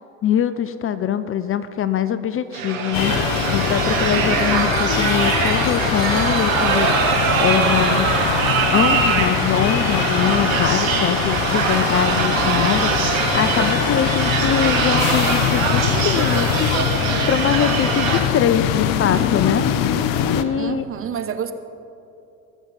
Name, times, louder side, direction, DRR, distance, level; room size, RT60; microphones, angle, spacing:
voice 1, 0.2-3.2 3.5-8.4 8.7-19.6 20.3-20.8, left 9 dB, 35° left, 13 dB, 0.6 m, -23 dB
sound 1, 2.5-18.2, right 6 dB, 80° right, 1.6 m, -22 dB
sound 2, 2.9-20.4, left 9 dB, 55° left, 0.9 m, -22 dB
voice 2, 20.5-21.5, right 8 dB, 35° right, 10 dB, 1.0 m, -28 dB
20.5 x 7.2 x 5.5 m, 2.8 s
hypercardioid pair, 75°, 39 cm